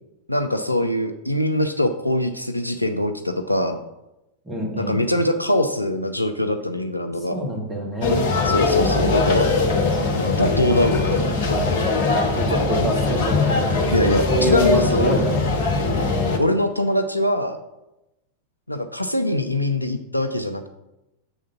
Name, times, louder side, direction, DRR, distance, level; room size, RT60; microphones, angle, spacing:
voice 1, 0.3-3.8 4.7-7.4 8.5-9.5 10.1-11.2 13.9-15.2 16.4-17.6 18.7-20.7, left 1 dB, 90° left, 7 dB, 0.4 m, -22 dB
voice 2, 4.5-5.0 7.3-8.2 12.4-15.4 15.8-16.1, equal, 15° right, -2 dB, 2.0 m, -26 dB
sound 1, 8.0-16.4, left 3 dB, 55° left, 1.0 m, -21 dB
7.2 x 3.7 x 5.8 m, 0.93 s
figure-of-eight pair, 90°, 0 cm